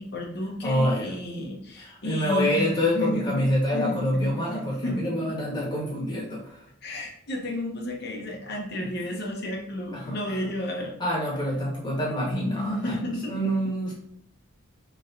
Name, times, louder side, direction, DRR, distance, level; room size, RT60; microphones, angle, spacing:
voice 1, 0.0-3.4 3.7-5.3 6.8-10.9 12.2-13.3, left 1 dB, 50° left, 0 dB, 0.8 m, -32 dB
voice 2, 0.6-1.1 1.8-6.6 9.9-10.3 11.0-13.0 13.3-13.9, equal, 20° left, -5 dB, 1.2 m, -27 dB
4.0 x 3.1 x 2.6 m, 0.70 s
head